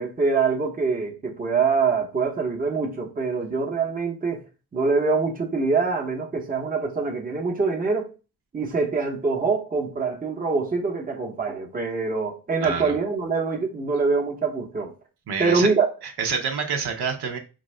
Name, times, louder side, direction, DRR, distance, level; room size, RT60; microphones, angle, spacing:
voice 1, 0.0-4.4 4.7-8.1 8.5-14.9 15.4-15.9, right 4 dB, 20° right, 0.8 m, -24 dB
voice 2, 12.6-12.9 15.3-15.7 16.0-17.4, right 5 dB, 85° right, 0.9 m, -27 dB
4.5 x 2.6 x 3.2 m
wide cardioid pair, 150°, 38 cm